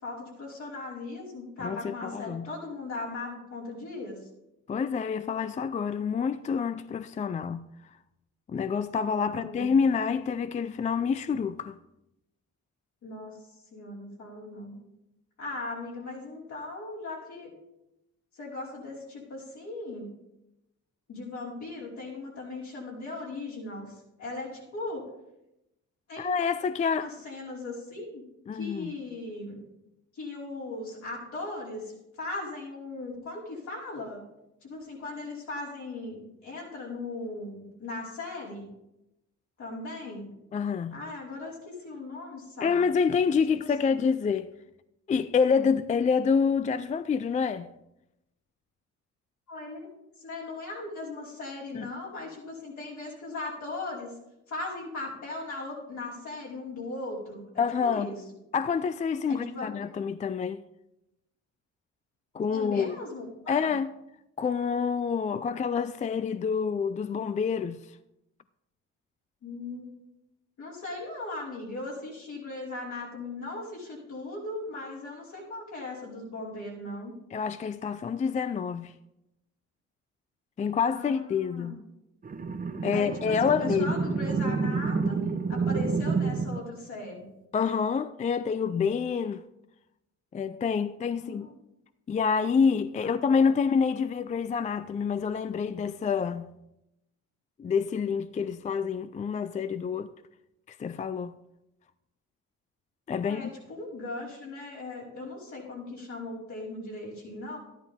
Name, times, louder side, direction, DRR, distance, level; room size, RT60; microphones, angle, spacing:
voice 1, 0.0-4.3 9.3-9.8 13.0-14.8 15.4-17.5 18.3-20.1 21.1-25.1 26.1-26.4 27.0-28.2 28.5-29.6 30.1-34.2 34.6-38.7 39.6-40.3 40.9-42.8 43.6-44.0 49.5-49.9 50.2-54.1 54.5-58.2 59.3-59.7 62.5-63.7 69.4-69.9 70.6-77.1 80.9-81.8 82.9-87.3 91.2-91.5 92.9-93.6 103.2-107.6, left 2 dB, 70° left, 4.8 m, -38 dB
voice 2, 1.6-2.5 4.7-7.7 8.5-11.7 26.2-27.1 28.5-28.9 40.5-41.0 42.6-44.5 45.1-47.7 51.7-51.9 57.6-58.1 58.5-60.6 62.3-63.0 63.5-63.9 64.4-67.9 77.3-78.9 80.6-81.8 82.8-84.0 87.5-89.4 90.3-91.5 92.1-96.5 97.6-100.1 100.7-101.4 103.1-103.5, left 6 dB, 25° left, 0.3 m, -27 dB
sound 1, 82.2-86.6, right 4 dB, 30° right, 0.8 m, -29 dB
13.0 x 10.5 x 3.6 m
cardioid pair, 90°, 30 cm